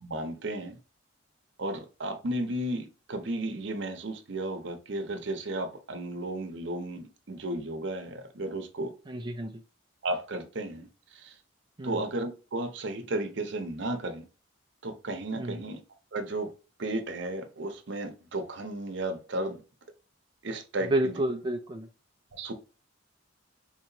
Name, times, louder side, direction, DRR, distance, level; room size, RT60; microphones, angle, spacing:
voice 1, 0.0-0.8 1.6-8.9 10.0-11.4 11.8-14.3 14.8-15.8 16.1-16.5 16.8-19.6 20.4-21.2 22.3-22.5, right 1 dB, 65° right, 0.8 m, -34 dB
voice 2, 9.1-9.6 11.8-12.0 15.4-15.6 20.9-21.9, right 1 dB, 25° right, 0.4 m, -30 dB
4.3 x 2.9 x 2.6 m
head